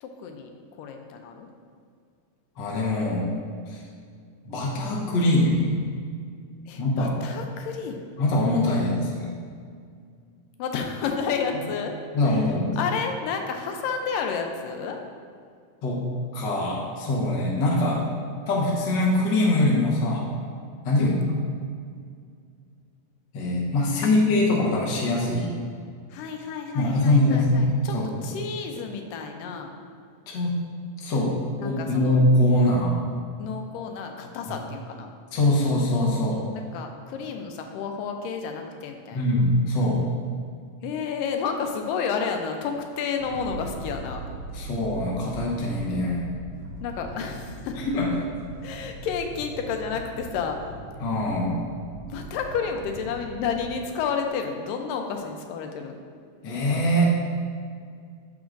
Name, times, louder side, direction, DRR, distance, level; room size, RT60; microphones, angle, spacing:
voice 1, 0.0-0.5 0.8-1.5 6.7-8.2 10.6-11.9 12.2-12.5 12.8-15.0 21.0-21.2 24.0-24.1 26.1-28.0 28.2-29.7 31.6-32.2 33.4-35.1 36.5-39.2 40.8-44.2 46.8-47.8 48.6-50.6 52.1-56.0, left 6 dB, 85° left, 4 dB, 2.2 m, -31 dB
voice 2, 2.6-3.3 3.7-3.8 4.4-5.7 6.8-7.2 8.2-9.3 12.1-12.7 15.8-16.0 16.3-18.1 18.5-20.3 20.8-21.2 23.3-25.5 26.7-28.0 30.3-30.5 31.0-33.0 35.3-36.4 39.1-40.0 44.5-46.3 47.8-48.1 51.0-51.6 56.4-57.2, left 1 dB, 60° left, -4 dB, 1.1 m, -23 dB
sound 1, 43.2-53.8, right 1 dB, 60° right, 1.1 m, -40 dB
13.0 x 4.8 x 2.5 m, 2.2 s
omnidirectional pair, 3.9 m